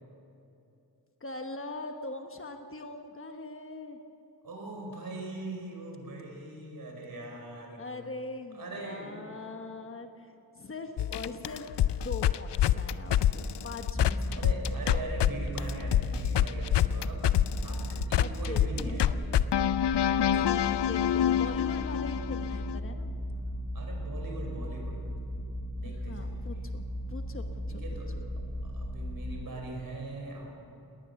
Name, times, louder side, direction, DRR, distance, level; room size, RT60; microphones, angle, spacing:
voice 1, 1.2-4.0 7.8-14.4 17.8-17.9 18.1-19.1 20.3-23.2 25.8-27.8, left 3 dB, 30° left, 5 dB, 1.1 m, -42 dB
voice 2, 4.4-7.8 8.5-9.1 14.3-17.3 17.6-19.3 23.7-25.0 25.8-26.4 27.7-28.1 28.6-30.5, right 2 dB, 55° right, 1 dB, 5.2 m, -41 dB
sound 1, 11.0-15.3 15.6-22.8, left 11 dB, 85° left, 0.6 m, -26 dB
sound 2, 13.9-29.5, equal, 10° left, 0.7 m, -36 dB
20.0 x 19.0 x 7.1 m, 2.8 s
wide cardioid pair, 170°, 40 cm